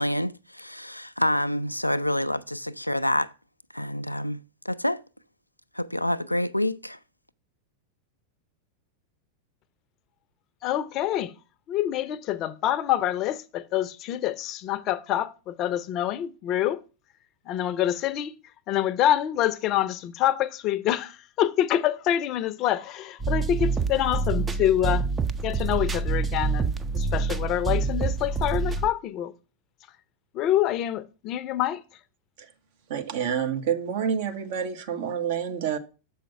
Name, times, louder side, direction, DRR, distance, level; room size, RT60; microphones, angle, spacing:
voice 1, 0.0-3.3 3.7-5.0 5.7-7.0, left 1 dB, 90° left, 0.3 m, -27 dB
voice 2, 10.6-11.3 11.7-16.8 17.5-18.3 18.7-25.1 25.4-29.3 30.3-31.8, left 12 dB, 35° left, 0.6 m, -26 dB
sound 1, 23.2-28.9, right 4 dB, 15° right, 0.5 m, -27 dB
voice 3, 32.9-35.8, right 8 dB, 50° right, 1.0 m, -28 dB
6.9 x 5.0 x 5.6 m
figure-of-eight pair, 90°, 0 cm